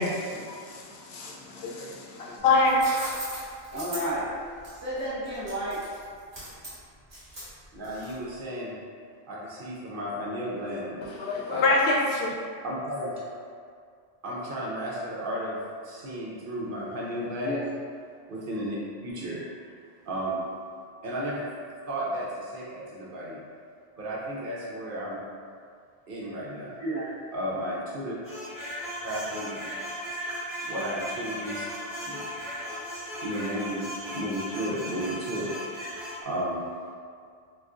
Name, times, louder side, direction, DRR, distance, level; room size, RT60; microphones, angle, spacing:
voice 1, 0.0-2.0 2.4-2.8 11.0-12.3, left 3 dB, 85° left, -3 dB, 0.8 m, -25 dB
sound 1, 2.4-8.4, right 1 dB, 40° right, 1.1 m, -40 dB
voice 2, 3.7-4.3 4.7-5.8 17.4-17.6 26.8-27.1 35.7-35.9, right 1 dB, 20° right, -11 dB, 0.7 m, -31 dB
voice 3, 7.7-8.8 9.3-11.0 11.5-11.7 12.6-13.2 14.2-15.6 15.8-17.6 18.3-19.4 20.0-20.5 21.0-21.4 21.9-23.4 24.0-25.2 26.1-26.8 27.3-28.2 29.0-29.7 30.7-31.7 32.1-32.2 33.2-33.9 34.1-35.5 36.2-36.7, equal, 65° right, -5 dB, 0.7 m, -33 dB
sound 2, 28.2-36.2, equal, 10° left, 1.4 m, -36 dB
3.8 x 2.3 x 2.4 m, 2.1 s
omnidirectional pair, 1.0 m